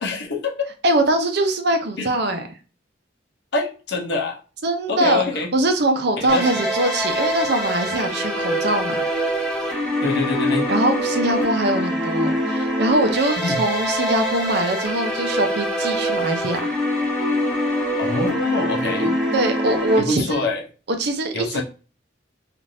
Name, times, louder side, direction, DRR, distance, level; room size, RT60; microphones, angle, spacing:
voice 1, 0.0-0.5 2.0-2.1 3.5-4.4 4.9-5.6 6.2-6.7 10.0-10.7 13.4-13.6 18.0-19.2 20.0-20.6 21.3-21.6, left 3 dB, 65° left, 0 dB, 0.8 m, -25 dB
voice 2, 0.8-2.4 4.6-5.2 5.5-9.1 10.7-16.7 19.3-20.5 21.0-21.6, right 1 dB, 60° right, 7 dB, 0.6 m, -22 dB
sound 1, 6.3-20.0, equal, 5° left, 1.1 m, -24 dB
3.2 x 2.5 x 2.6 m, 0.35 s
head